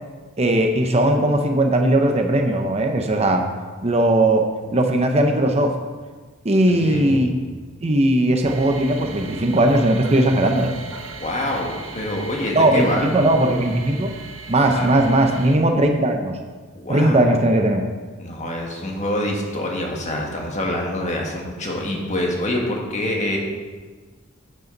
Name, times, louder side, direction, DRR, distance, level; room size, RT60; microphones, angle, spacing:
voice 1, 0.4-3.5 3.8-4.5 4.7-5.7 6.4-7.3 7.8-10.7 12.5-14.1 14.5-16.4 16.9-17.9, right 1 dB, 30° right, 4 dB, 0.8 m, -18 dB
voice 2, 6.7-7.3 11.2-13.2 14.6-15.1 16.8-17.4 18.2-23.4, left 1 dB, 35° left, 0 dB, 1.8 m, -26 dB
sound 1, 8.4-15.6, right 4 dB, 80° right, 1.1 m, -38 dB
10.5 x 8.6 x 4.0 m, 1.4 s
head